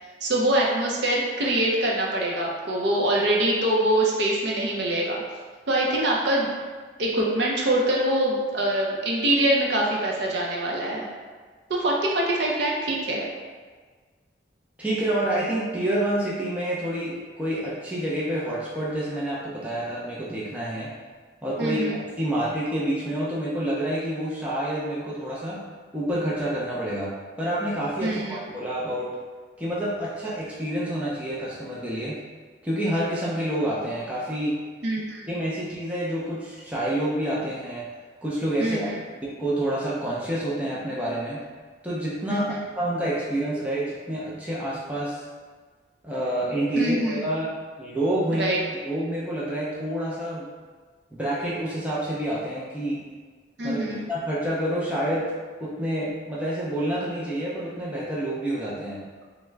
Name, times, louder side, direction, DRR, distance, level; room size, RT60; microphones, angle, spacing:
voice 1, 0.2-5.2 5.7-6.5 7.0-11.1 11.7-13.3 21.6-22.0 28.0-28.4 34.8-35.3 38.6-39.0 42.3-42.6 46.8-47.3 48.3-48.6 53.6-54.0, right 1 dB, 65° right, -3 dB, 0.6 m, -24 dB
voice 2, 14.8-20.9 21.4-25.6 25.9-27.1 27.4-29.1 29.6-32.2 32.6-34.5 35.3-37.9 38.2-41.4 41.8-45.2 46.0-47.5 47.8-48.5 48.9-50.5 51.1-53.0 53.6-55.3 55.6-59.0, right 1 dB, 5° right, -7 dB, 0.4 m, -28 dB
3.5 x 2.1 x 3.2 m, 1.5 s
head